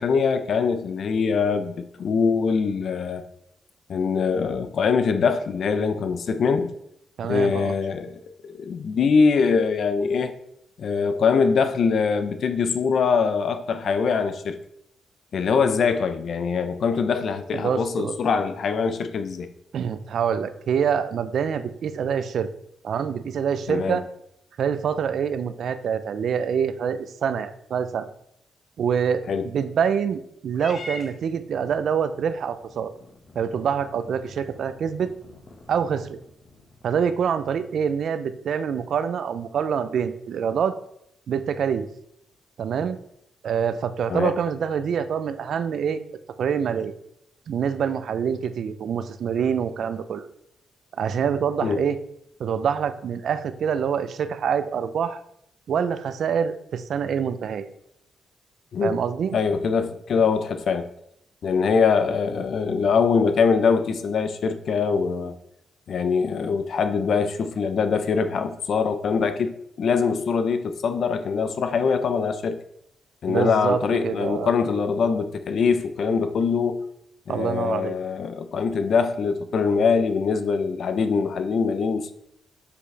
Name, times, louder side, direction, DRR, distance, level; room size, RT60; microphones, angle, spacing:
voice 1, 0.0-3.2 3.9-6.7 7.2-10.3 10.8-14.6 15.3-19.5 23.7-24.0 29.3-29.4 44.1-44.3 51.6-51.8 58.7-58.9 59.3-60.9 61.4-65.3 65.9-72.6 73.2-76.8 77.3-82.1, left 5 dB, 65° left, 10 dB, 0.7 m, -23 dB
voice 2, 7.2-7.7 17.5-18.2 19.7-22.5 22.8-24.0 24.6-28.1 28.8-32.9 33.3-35.1 35.7-36.2 36.8-40.8 41.3-41.9 42.6-43.0 43.4-46.0 46.4-46.9 47.5-50.3 51.0-52.0 52.4-55.2 55.7-57.7 58.8-59.4 73.3-74.5 77.3-78.0, right 7 dB, 70° right, 12 dB, 0.5 m, -25 dB
Purr / Meow, 30.5-37.0, left 1 dB, 45° left, 1.5 m, -45 dB
7.4 x 6.8 x 3.4 m, 0.76 s
cardioid pair, 85°, 0 cm